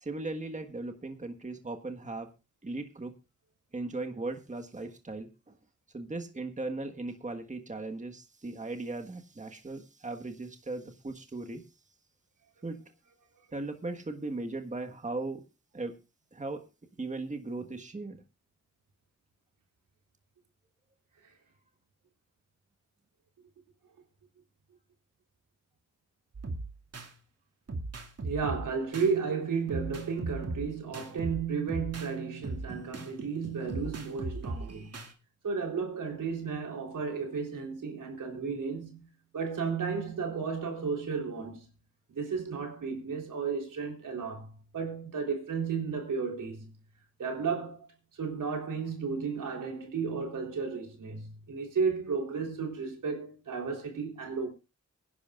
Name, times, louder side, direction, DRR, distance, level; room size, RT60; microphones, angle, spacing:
voice 1, 0.0-2.3 2.6-3.2 3.7-5.6 5.9-11.6 12.6-12.8 13.5-15.4 15.7-16.0 16.3-16.6 17.0-18.2, right 2 dB, 25° right, 1.5 m, -38 dB
sound 1, 26.3-27.1 27.7-29.1 29.7-32.1 32.4-35.1, right 2 dB, 55° right, 2.2 m, -38 dB
voice 2, 28.2-35.0 35.4-39.1 39.3-41.7 42.1-44.5 44.7-46.7 47.2-47.9 48.1-54.5, right 5 dB, 90° right, 3.7 m, -33 dB
23.5 x 10.5 x 2.4 m
cardioid pair, 75°, 31 cm